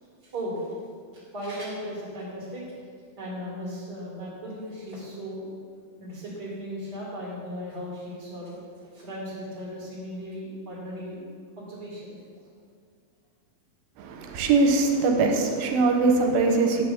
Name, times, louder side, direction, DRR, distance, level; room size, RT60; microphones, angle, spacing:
voice 1, 0.2-0.7 1.1-2.6 3.2-5.4 6.0-11.2 11.6-12.1, equal, 35° right, 2.1 m, -36 dB
voice 2, 14.0-16.8, right 3 dB, 85° right, 2.5 m, -22 dB
9.9 x 3.4 x 6.9 m
omnidirectional pair, 4.3 m